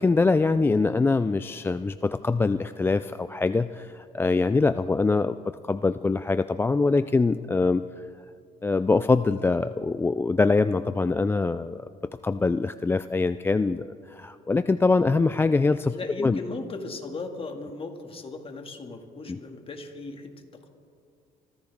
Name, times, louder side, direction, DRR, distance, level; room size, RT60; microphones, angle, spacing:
voice 1, 0.0-7.9 8.6-11.8 12.2-16.4 19.3-19.4, left 3 dB, 15° left, 12 dB, 0.3 m, -24 dB
voice 2, 15.9-20.7, left 3 dB, 35° left, 3 dB, 2.2 m, -37 dB
25.5 x 15.0 x 3.6 m, 2.3 s
cardioid pair, 110°, 17 cm